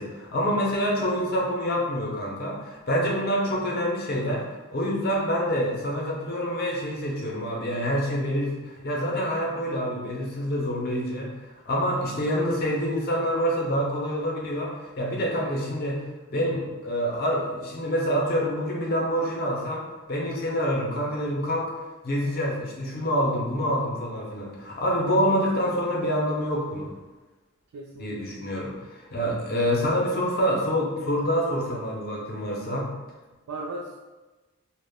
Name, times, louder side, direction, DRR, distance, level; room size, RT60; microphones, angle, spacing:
voice 1, 0.0-4.4 4.7-11.3 11.7-16.0 16.3-21.7 22.0-26.9 28.0-32.9, equal, 45° left, -2 dB, 0.5 m, -26 dB
voice 2, 1.0-1.4 12.2-12.5 25.5-25.7 27.7-28.3 33.5-34.0, right 2 dB, 80° right, -2 dB, 0.3 m, -38 dB
2.2 x 2.0 x 3.4 m, 1.2 s
head